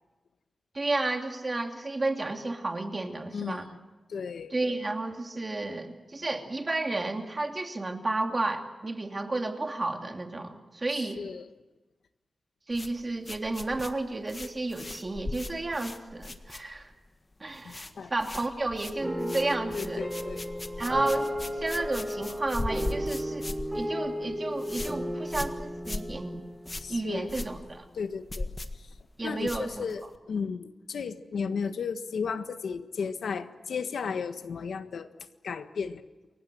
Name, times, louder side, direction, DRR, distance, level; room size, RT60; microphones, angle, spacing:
voice 1, 0.7-3.7 4.5-11.2 12.7-16.9 17.4-20.0 20.8-23.5 23.7-26.4 26.9-27.8 29.2-29.8, right 2 dB, 30° right, 4 dB, 2.7 m, -32 dB
voice 2, 3.3-3.7 4.1-4.6 10.9-11.5 17.6-18.1 19.7-20.4 26.8-27.3 27.9-29.0 29.2-35.1 35.4-36.0, left 5 dB, 85° left, 9 dB, 1.5 m, -34 dB
sound 1, 12.7-17.1 17.3-17.9 18.2-30.2, left 2 dB, 25° left, 1.7 m, -39 dB
sound 2, 19.0-27.6, equal, 5° right, 7.4 m, -34 dB
28.5 x 23.5 x 7.8 m, 1.1 s
wide cardioid pair, 120°, 0 cm